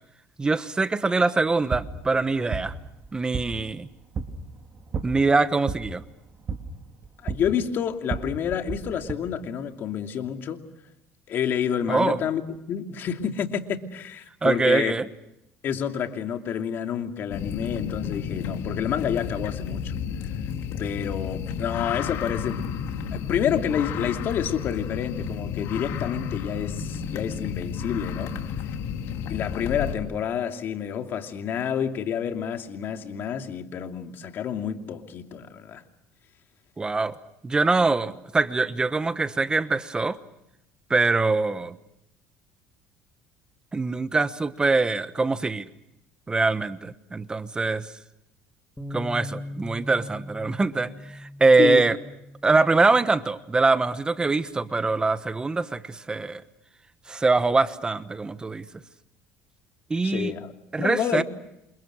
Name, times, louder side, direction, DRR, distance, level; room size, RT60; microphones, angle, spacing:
voice 1, 0.4-2.7 3.1-3.9 5.0-6.0 11.9-12.2 14.4-15.1 36.8-37.1 37.4-40.2 40.9-41.8 43.7-45.7 46.3-47.9 48.9-50.9 51.2-52.0 52.4-56.4 57.1-58.6 59.9-60.3 60.7-61.2, right 3 dB, 20° right, 1.2 m, -23 dB
sound 1, 1.6-9.1, right 5 dB, 35° right, 3.1 m, -35 dB
voice 2, 7.2-10.6 11.3-14.9 15.6-19.9 20.8-22.7 23.1-28.4 29.3-35.8 51.6-51.9 60.0-60.5 60.8-61.2, left 8 dB, 50° left, 2.7 m, -29 dB
sound 2, 17.3-29.9, left 7 dB, 65° left, 3.7 m, -32 dB
Bass guitar, 48.8-55.0, left 2 dB, 5° left, 2.6 m, -41 dB
29.0 x 27.5 x 6.4 m
supercardioid pair, 105°, 5 cm